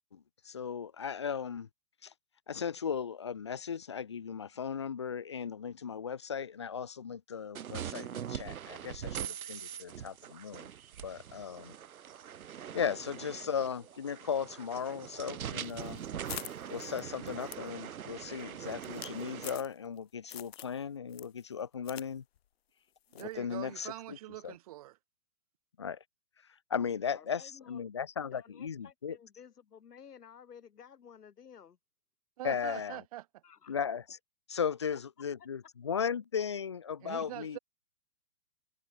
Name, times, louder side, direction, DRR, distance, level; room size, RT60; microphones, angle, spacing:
voice 1, 0.0-1.7 2.0-2.1 2.5-10.7 11.0-11.7 12.7-16.0 16.7-22.2 23.1-24.2 24.4-24.5 25.8-26.0 26.7-29.2 32.4-33.0 33.7-34.2 34.5-37.6, left 7 dB, 20° left, 0.5 m, -36 dB
sound 1, 7.5-19.6, right 9 dB, 60° right, 3.1 m, -42 dB
sound 2, 15.6-20.0 20.3-20.8 21.1-22.1 22.4-22.5 23.1-23.4, left 11 dB, 40° left, 1.1 m, -46 dB
voice 2, 16.1-16.6 23.2-25.0 32.4-33.2 37.0-37.6, right 15 dB, 25° right, 1.0 m, -44 dB
voice 3, 27.1-27.8 28.3-31.8 33.4-33.8 34.9-35.0, left 7 dB, 70° left, 7.6 m, -54 dB
hypercardioid pair, 160°, 48 cm